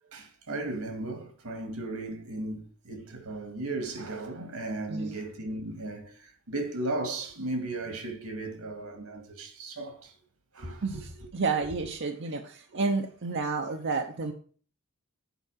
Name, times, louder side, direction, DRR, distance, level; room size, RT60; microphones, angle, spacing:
voice 1, 0.0-10.2 10.5-10.8, right 2 dB, 85° right, 1.9 m, -36 dB
voice 2, 4.9-5.2 10.8-14.3, right 4 dB, 55° right, 0.7 m, -31 dB
8.2 x 4.7 x 6.2 m
head